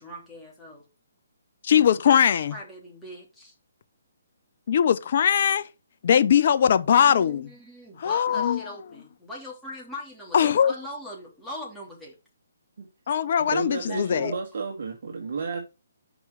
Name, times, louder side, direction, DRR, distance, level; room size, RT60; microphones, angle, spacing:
voice 1, 0.0-0.9 2.5-3.5 6.9-12.1 13.6-14.4 15.2-15.4, left 1 dB, 5° left, 2.9 m, -41 dB
voice 2, 1.6-2.5 4.7-5.7 6.0-7.5 8.0-8.7 10.3-10.7 13.1-14.3, left 8 dB, 50° left, 0.7 m, -20 dB
voice 3, 13.5-15.6, right 4 dB, 60° right, 1.9 m, -32 dB
6.0 x 5.3 x 6.4 m
hypercardioid pair, 150°, 0 cm